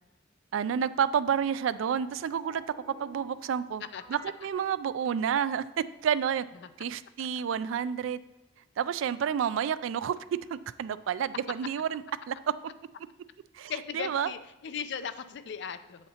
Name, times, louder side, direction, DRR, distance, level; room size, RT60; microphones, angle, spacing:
voice 1, 0.5-3.8 4.1-6.4 6.8-8.2 8.8-12.0 12.3-12.4 13.5-14.3, right 8 dB, 70° right, 16 dB, 0.3 m, -30 dB
sound 1, 1.3-5.7, left 1 dB, 20° left, 0.8 m, -54 dB
voice 2, 13.7-16.1, left 7 dB, 60° left, 11 dB, 0.4 m, -37 dB
8.1 x 7.7 x 2.8 m, 1.0 s
head